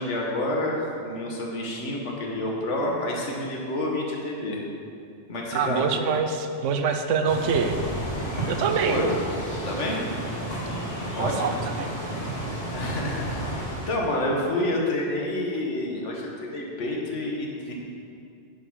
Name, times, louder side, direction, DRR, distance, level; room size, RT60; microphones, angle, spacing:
voice 1, 0.0-4.6 5.3-5.8 8.8-9.1 9.6-10.1 11.1-11.6 12.7-17.7, left 1 dB, 70° left, -2 dB, 1.5 m, -28 dB
voice 2, 5.5-7.7 8.5-9.1 11.2-11.9, right 6 dB, 90° right, 7 dB, 1.0 m, -25 dB
sound 1, 7.2-13.9, right 1 dB, 55° left, 2.1 m, -31 dB
10.0 x 3.8 x 6.2 m, 2.5 s
omnidirectional pair, 1.3 m